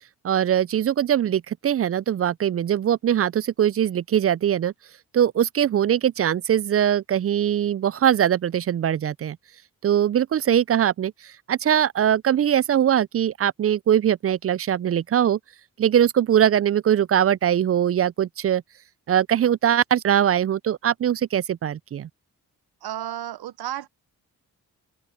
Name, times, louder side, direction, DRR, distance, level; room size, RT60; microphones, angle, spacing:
voice 1, 0.2-4.7 5.1-9.4 9.8-15.4 15.8-18.6 19.1-22.1, right 10 dB, 40° right, 0.4 m, -21 dB
voice 2, 22.8-23.9, right 12 dB, 70° right, 0.9 m, -32 dB
open air
supercardioid pair, 45°, 39 cm